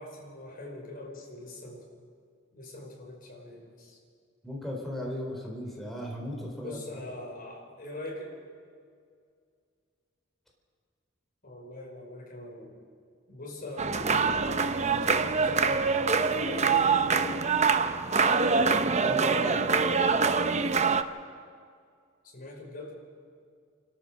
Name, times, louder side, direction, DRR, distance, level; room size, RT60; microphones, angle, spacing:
voice 1, 0.0-1.9 2.5-4.0 6.6-8.3 11.4-12.8 13.3-17.4 22.2-22.9, left 2 dB, 50° left, -1 dB, 5.2 m, -42 dB
voice 2, 4.4-6.8 18.6-19.7, equal, ahead, -2 dB, 4.1 m, -36 dB
sound 1, 13.8-21.0, right 5 dB, 35° right, 0.7 m, -25 dB
28.5 x 14.0 x 6.5 m, 2.2 s
head